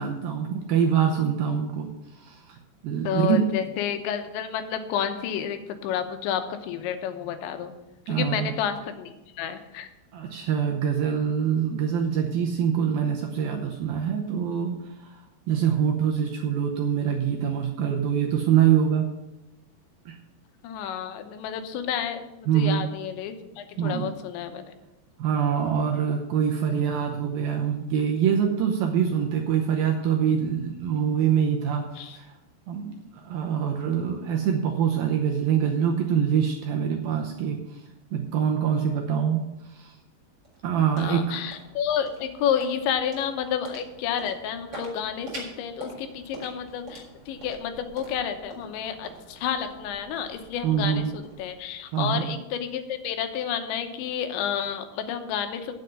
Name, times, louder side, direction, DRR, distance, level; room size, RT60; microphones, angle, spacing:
voice 1, 0.0-2.6 2.8-3.5 8.1-8.5 10.1-15.2 15.5-19.1 20.1-20.2 22.5-22.8 23.8-24.1 25.2-32.3 32.7-37.8 38.1-39.4 39.7-39.9 40.6-41.2 50.6-51.1 51.9-52.2, right 8 dB, 75° right, 2 dB, 2.2 m, -25 dB
voice 2, 3.0-7.7 8.1-9.9 20.6-24.7 32.0-32.2 41.0-55.7, left 8 dB, 85° left, 8 dB, 3.3 m, -30 dB
sound 1, 40.2-52.4, right 2 dB, 25° right, 4.6 m, -46 dB
9.1 x 7.7 x 7.7 m, 0.98 s
omnidirectional pair, 5.2 m